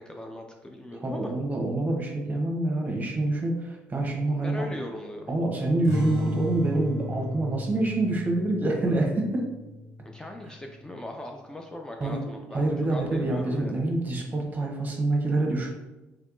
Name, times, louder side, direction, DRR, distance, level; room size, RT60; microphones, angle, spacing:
voice 1, 0.0-1.3 4.4-5.3 10.0-13.7, left 1 dB, 10° left, 2 dB, 0.4 m, -40 dB
voice 2, 1.0-4.7 5.3-9.4 12.0-12.2 12.5-15.7, right 2 dB, 30° right, 1 dB, 1.0 m, -26 dB
sound 1, 5.8-10.9, left 2 dB, 60° left, 1.4 m, -36 dB
3.4 x 3.1 x 2.6 m, 1.0 s
hypercardioid pair, 55°, 6 cm